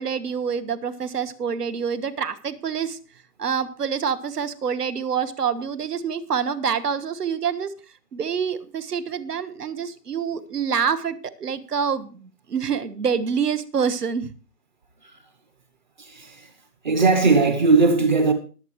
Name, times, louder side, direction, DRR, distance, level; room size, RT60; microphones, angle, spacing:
voice 1, 0.0-3.0 3.4-7.7 8.1-14.3, right 7 dB, 75° right, 1.5 m, -26 dB
voice 2, 16.0-16.5 16.8-18.3, right 3 dB, 30° right, 0.9 m, -19 dB
21.0 x 7.7 x 3.1 m
hypercardioid pair, 160°, 47 cm